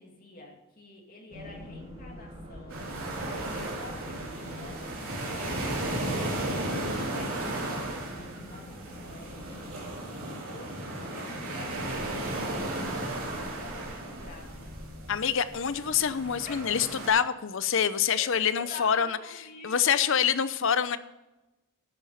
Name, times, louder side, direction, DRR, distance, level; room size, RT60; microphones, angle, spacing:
voice 1, 0.0-2.8 3.3-13.1 13.4-14.7 16.4-16.7 18.2-20.2, left 2 dB, 40° left, 1 dB, 2.6 m, -48 dB
sound 1, 1.3-9.9, equal, 30° right, 2.6 m, -44 dB
sound 2, 2.7-17.1, right 1 dB, 75° right, 3.7 m, -35 dB
voice 2, 15.1-19.2 19.6-21.0, left 7 dB, 65° left, 14 dB, 0.7 m, -26 dB
12.5 x 8.3 x 5.6 m, 1.0 s
head